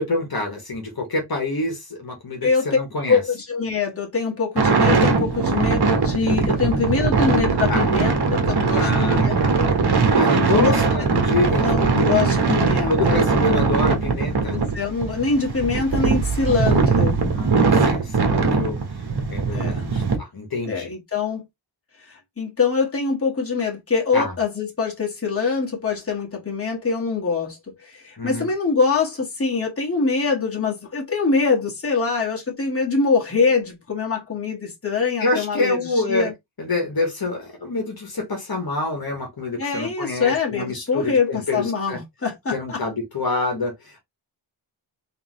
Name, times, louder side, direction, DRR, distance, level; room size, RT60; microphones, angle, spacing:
voice 1, 0.0-3.2 7.7-7.9 8.7-9.5 10.1-11.9 12.9-14.6 17.3-17.5 17.8-18.8 19.3-20.9 24.1-24.3 28.2-28.5 35.2-36.3 36.6-42.0 42.5-44.0, left 2 dB, 50° left, 1.7 m, -26 dB
voice 2, 2.4-2.8 3.1-9.7 10.5-10.8 11.6-13.6 14.5-17.2 19.5-19.8 20.6-21.4 22.0-36.3 39.6-42.8, left 4 dB, 30° left, 1.7 m, -24 dB
sound 1, 4.6-20.2, right 4 dB, 55° right, 1.4 m, -20 dB
3.8 x 3.3 x 3.2 m
wide cardioid pair, 90°, 47 cm